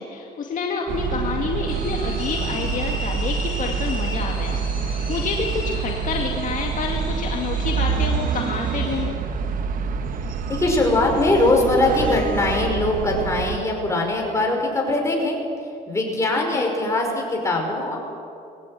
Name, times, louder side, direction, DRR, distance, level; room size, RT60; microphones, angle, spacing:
voice 1, 0.0-9.2 16.4-16.7, left 4 dB, 50° left, 1 dB, 2.2 m, -28 dB
sound 1, 0.9-13.6, right 6 dB, 55° right, 1.2 m, -27 dB
sound 2, 1.7-9.0, left 1 dB, 5° right, 6.6 m, -37 dB
voice 2, 10.5-15.4 15.9-18.0, left 2 dB, 15° left, 0 dB, 5.5 m, -21 dB
20.5 x 16.0 x 9.2 m, 2.6 s
cardioid pair, 110°, 17 cm